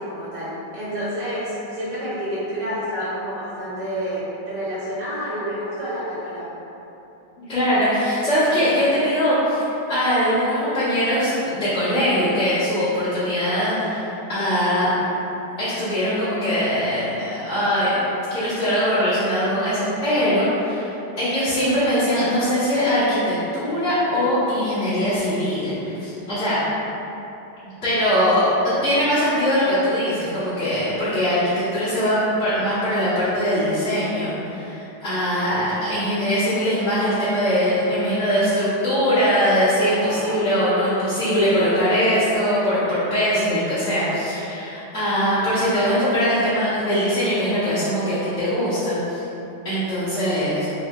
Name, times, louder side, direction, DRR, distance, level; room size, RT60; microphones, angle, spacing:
voice 1, 0.0-6.5 40.0-40.5, equal, 70° right, -11 dB, 1.3 m, -29 dB
voice 2, 7.5-15.1 15.6-20.9 21.2-26.6 27.8-28.5 28.8-49.2 49.6-50.7, equal, 45° left, -17 dB, 1.2 m, -21 dB
3.5 x 3.2 x 2.3 m, 2.9 s
omnidirectional pair, 1.9 m